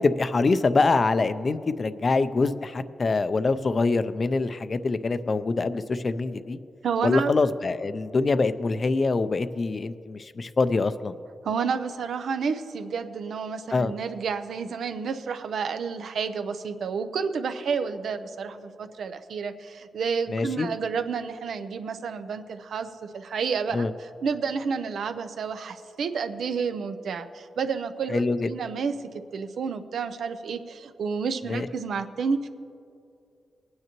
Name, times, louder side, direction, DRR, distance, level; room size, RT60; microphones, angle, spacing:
voice 1, 0.0-6.6 7.0-11.2 13.7-13.9 20.3-20.7 23.7-23.9 28.1-28.5 31.5-31.7, left 3 dB, 40° left, 13 dB, 0.4 m, -24 dB
voice 2, 6.8-7.3 11.4-28.9 29.3-32.5, right 5 dB, 85° right, 10 dB, 0.6 m, -30 dB
21.0 x 9.4 x 3.0 m, 2.6 s
wide cardioid pair, 120°, 0 cm